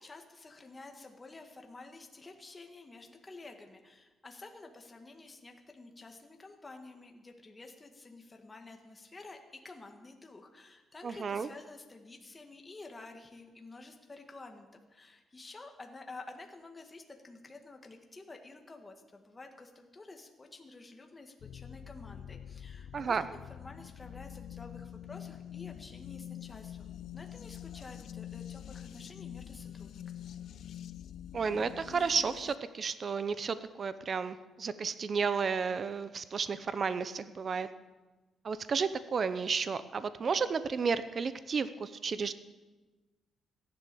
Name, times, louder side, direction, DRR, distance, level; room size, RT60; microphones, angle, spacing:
voice 1, 0.0-30.3, left 3 dB, 20° left, 3 dB, 1.7 m, -50 dB
voice 2, 11.0-11.5 22.9-23.3 31.3-37.7 38.4-42.3, right 5 dB, 40° right, 13 dB, 0.7 m, -32 dB
sound 1, 21.4-32.6, left 10 dB, 70° left, 0.5 m, -46 dB
15.5 x 11.0 x 6.9 m, 1.2 s
cardioid pair, 115°, 0 cm